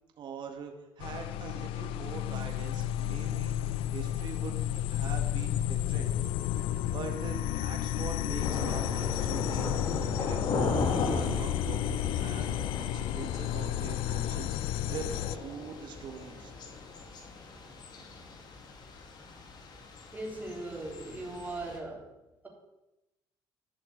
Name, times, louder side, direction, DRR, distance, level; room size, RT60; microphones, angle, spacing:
voice 1, 0.2-4.6 4.9-6.1 6.9-14.6 14.9-16.5, right 6 dB, 60° right, 4 dB, 1.9 m, -43 dB
sound 1, 1.0-15.4, left 12 dB, 85° left, 0.4 m, -32 dB
Thunder / Rain, 8.4-21.8, left 3 dB, 55° left, 2.5 m, -37 dB
voice 2, 20.1-22.1, right 2 dB, 20° right, -1 dB, 3.5 m, -39 dB
12.5 x 6.6 x 8.2 m, 0.96 s
cardioid pair, 105°, 9 cm